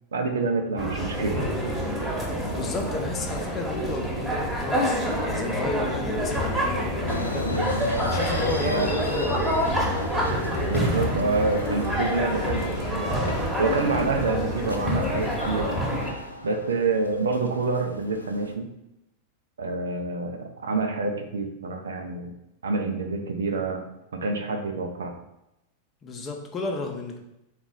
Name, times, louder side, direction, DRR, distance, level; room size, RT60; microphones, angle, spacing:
voice 1, 0.1-1.5 8.6-8.9 10.7-13.1 13.6-15.7 16.4-18.7 19.6-22.3 22.6-23.8 24.1-25.1, right 3 dB, 65° right, 5 dB, 0.5 m, -27 dB
sound 1, 0.8-16.1, equal, 10° right, 1.1 m, -27 dB
voice 2, 2.5-7.5 8.0-9.5 26.0-27.2, left 3 dB, 25° left, 2 dB, 0.7 m, -32 dB
sound 2, 7.1-18.5, left 1 dB, 80° left, 0.3 m, -35 dB
3.9 x 2.4 x 3.7 m, 0.88 s
figure-of-eight pair, 90°, 0 cm